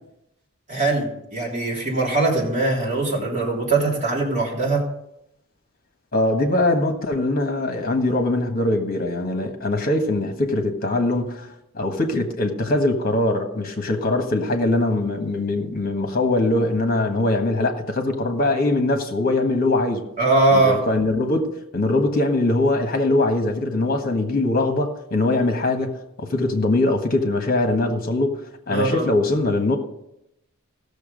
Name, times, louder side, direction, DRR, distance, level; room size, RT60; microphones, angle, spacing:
voice 1, 0.7-4.8 20.2-20.8 28.7-29.1, right 3 dB, 35° right, 3.2 m, -21 dB
voice 2, 6.1-11.5 11.7-20.0 20.5-29.8, left 2 dB, 40° left, 1.5 m, -22 dB
15.5 x 6.9 x 5.2 m
head